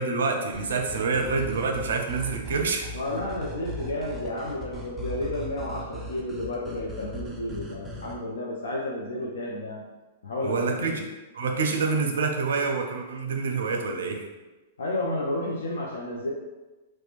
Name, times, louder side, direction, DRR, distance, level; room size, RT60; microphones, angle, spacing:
voice 1, 0.0-2.9 10.4-11.0 11.3-14.3, right 4 dB, 80° right, 4 dB, 0.4 m, -27 dB
sound 1, 0.5-8.2, right 1 dB, 10° right, 0.3 m, -38 dB
voice 2, 2.9-9.8 10.2-11.0 14.8-16.3, left 1 dB, 85° left, -3 dB, 0.4 m, -31 dB
2.9 x 2.1 x 2.4 m, 1.1 s
hypercardioid pair, 140°, 0 cm